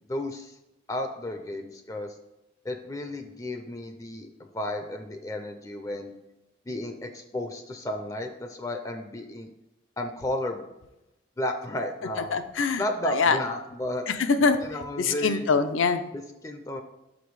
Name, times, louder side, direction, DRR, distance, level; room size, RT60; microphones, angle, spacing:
voice 1, 0.1-0.6 0.9-2.2 2.6-6.2 6.7-9.5 10.0-10.7 11.4-12.4 12.8-14.1 14.6-15.5 16.1-16.8, left 1 dB, 15° left, 5 dB, 0.4 m, -33 dB
voice 2, 12.3-13.4 14.1-14.6 15.0-16.0, left 4 dB, 80° left, 9 dB, 0.6 m, -24 dB
5.7 x 5.1 x 4.7 m, 0.94 s
head